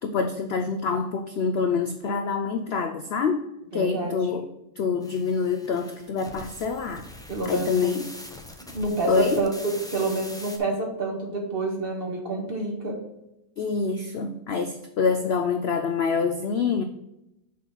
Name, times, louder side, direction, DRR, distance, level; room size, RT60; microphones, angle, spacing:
voice 1, 0.0-3.4 3.7-4.5 4.8-7.1 7.4-8.1 9.1-9.4 13.6-16.8, left 5 dB, 65° left, 7 dB, 0.6 m, -26 dB
voice 2, 3.7-4.1 7.3-7.9 8.7-13.0, right 2 dB, 40° right, 0 dB, 1.7 m, -28 dB
sound 1, 5.0-10.6, left 1 dB, 5° left, 0.4 m, -42 dB
6.3 x 4.3 x 5.6 m, 0.88 s
omnidirectional pair, 1.6 m